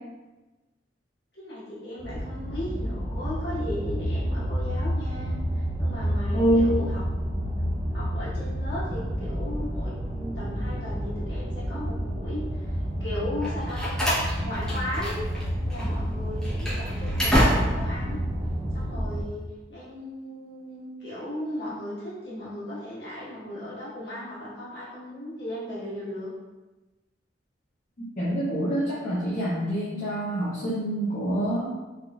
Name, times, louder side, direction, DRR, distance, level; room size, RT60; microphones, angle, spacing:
voice 1, 1.3-7.0 7.9-14.0 14.4-15.2 15.7-18.2 18.7-19.4 19.7-26.3, left 1 dB, 70° left, -9 dB, 1.4 m, -36 dB
sound 1, 2.0-19.2, equal, 35° right, 0.4 m, -30 dB
voice 2, 6.3-6.7 28.2-31.7, right 1 dB, 50° left, -10 dB, 0.6 m, -26 dB
Slam, 13.4-15.4 15.7-15.9 16.4-18.0, equal, 5° left, 0.7 m, -26 dB
3.4 x 2.5 x 2.3 m, 1.1 s
head